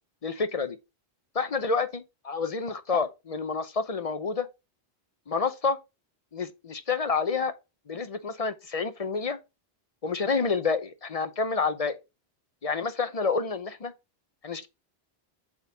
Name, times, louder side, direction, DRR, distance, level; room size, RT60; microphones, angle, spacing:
voice 1, 0.2-0.8 1.3-4.5 5.3-5.8 6.3-7.5 7.9-9.4 10.0-12.0 12.6-13.9 14.4-14.7, left 4 dB, 40° left, 0.7 m, -28 dB
7.9 x 3.8 x 4.0 m
omnidirectional pair, 1.0 m